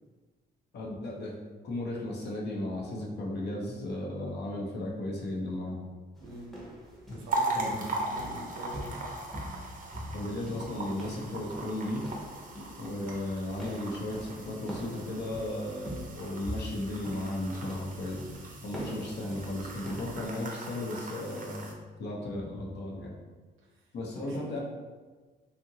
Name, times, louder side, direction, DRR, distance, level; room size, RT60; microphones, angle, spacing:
voice 1, 0.7-1.3 1.6-5.8 7.5-7.9 10.1-12.1 12.8-18.2 18.6-23.2 23.9-24.6, left 1 dB, 55° left, -2 dB, 0.7 m, -35 dB
sound 1, 6.2-20.5, equal, ahead, 0.7 m, -44 dB
voice 2, 6.2-6.6 7.1-9.0 23.6-23.9 24.2-24.6, right 1 dB, 80° right, -2 dB, 0.8 m, -45 dB
sound 2, 7.3-21.7, right 2 dB, 45° right, 0.6 m, -39 dB
2.8 x 2.5 x 2.7 m, 1.3 s
cardioid pair, 90°, 20 cm